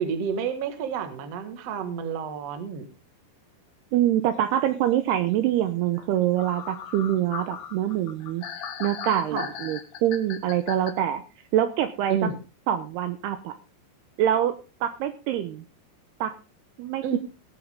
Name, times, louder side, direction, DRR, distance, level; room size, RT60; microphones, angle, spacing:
voice 1, 0.0-2.9 9.3-9.5 12.1-12.4 17.0-17.2, right 6 dB, 55° right, 8 dB, 1.9 m, -30 dB
voice 2, 3.9-8.4 8.8-11.2 11.5-12.2 12.7-13.5 14.2-14.6 14.8-15.6 16.2-16.3 16.8-17.2, right 11 dB, 80° right, 9 dB, 2.6 m, -25 dB
sound 1, 6.0-6.1 6.4-10.9, left 8 dB, 85° left, 1.5 m, -37 dB
19.0 x 8.4 x 3.6 m, 0.31 s
omnidirectional pair, 5.2 m